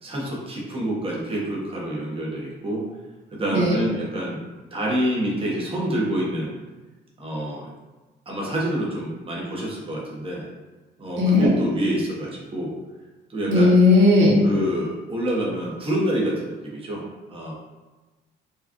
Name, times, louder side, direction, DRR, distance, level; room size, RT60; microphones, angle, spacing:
voice 1, 0.0-2.8 3.3-4.4 4.7-6.6 7.2-7.7 8.3-10.5 11.0-12.7 13.3-13.7 14.4-17.0 17.3-17.5, right 1 dB, 30° right, -4 dB, 1.0 m, -27 dB
voice 2, 11.2-11.5 13.5-14.4, left 2 dB, 70° right, -4 dB, 1.1 m, -16 dB
4.6 x 2.4 x 2.9 m, 1.2 s
cardioid pair, 90°, 20 cm